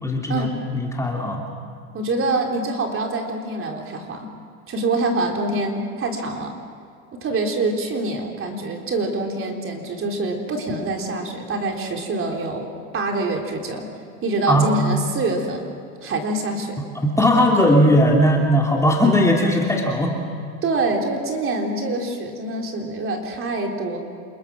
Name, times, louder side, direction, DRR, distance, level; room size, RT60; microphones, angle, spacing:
voice 1, 0.0-1.4 14.5-14.7 17.0-20.2, equal, 5° left, -1 dB, 2.9 m, -18 dB
voice 2, 1.9-4.3 4.7-6.5 7.1-13.9 14.2-15.6 16.0-16.8 20.6-24.0, right 2 dB, 30° right, 2 dB, 3.8 m, -25 dB
28.0 x 21.0 x 6.2 m, 2.3 s
hypercardioid pair, 110°, 43 cm